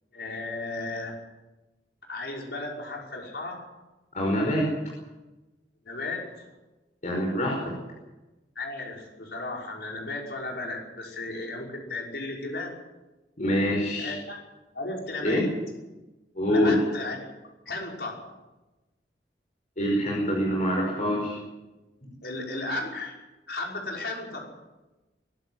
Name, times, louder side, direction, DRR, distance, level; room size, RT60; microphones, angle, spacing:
voice 1, 0.1-1.2 2.1-3.7 5.9-6.5 8.6-12.7 14.0-14.4 14.7-15.5 16.5-17.3 17.7-18.3 22.2-23.2 23.5-24.5, left 2 dB, 70° left, -1 dB, 5.6 m, -35 dB
voice 2, 4.1-4.7 7.0-7.8 13.4-14.1 15.2-15.4 16.3-16.7 19.8-21.4, equal, 45° left, -1 dB, 5.1 m, -25 dB
22.5 x 12.5 x 9.4 m, 1.1 s
head